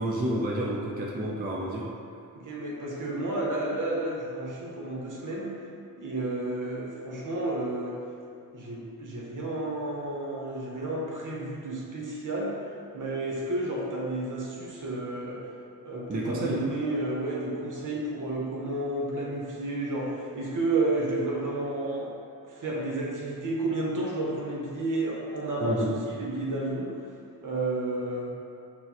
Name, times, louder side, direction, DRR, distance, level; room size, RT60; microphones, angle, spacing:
voice 1, 0.0-1.9 16.1-16.6 25.6-25.9, right 1 dB, 25° right, -3 dB, 0.5 m, -29 dB
voice 2, 2.3-5.5 6.0-8.0 8.5-12.5 12.9-15.4 15.8-22.1 22.5-26.9 27.4-28.3, right 2 dB, 60° right, -4 dB, 0.8 m, -31 dB
6.1 x 2.1 x 2.9 m, 2.7 s
wide cardioid pair, 85°, 35 cm